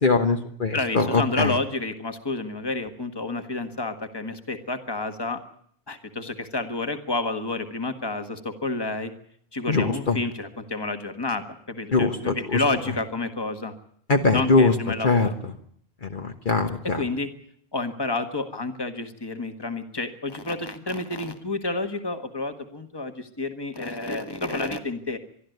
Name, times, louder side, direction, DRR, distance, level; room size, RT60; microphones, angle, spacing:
voice 1, 0.0-1.5 9.7-10.2 11.9-12.6 14.1-14.7 15.0-15.3 16.0-17.0, left 3 dB, 55° left, 5 dB, 1.4 m, -22 dB
voice 2, 0.7-5.4 5.9-9.1 9.5-13.7 14.3-15.3 17.0-17.3 17.7-25.2, left 2 dB, 25° left, 7 dB, 1.6 m, -30 dB
23.0 x 13.0 x 9.3 m, 0.65 s
omnidirectional pair, 1.0 m